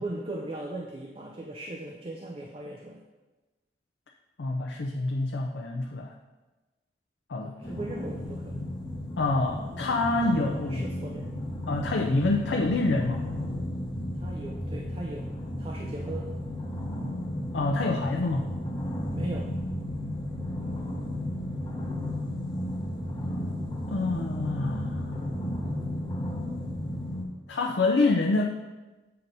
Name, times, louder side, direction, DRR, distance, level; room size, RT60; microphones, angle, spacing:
voice 1, 0.0-3.0 7.4-8.6 10.4-11.6 14.1-16.3 19.1-19.5, right 1 dB, 35° right, 0 dB, 0.5 m, -38 dB
voice 2, 4.4-6.1 7.3-7.6 9.2-10.9 11.7-13.2 17.5-18.5 23.9-25.2 27.5-28.5, left 2 dB, 75° left, 1 dB, 0.5 m, -27 dB
sound 1, 7.6-27.2, left 1 dB, 25° left, 0.8 m, -33 dB
7.7 x 2.8 x 5.2 m, 1.2 s
head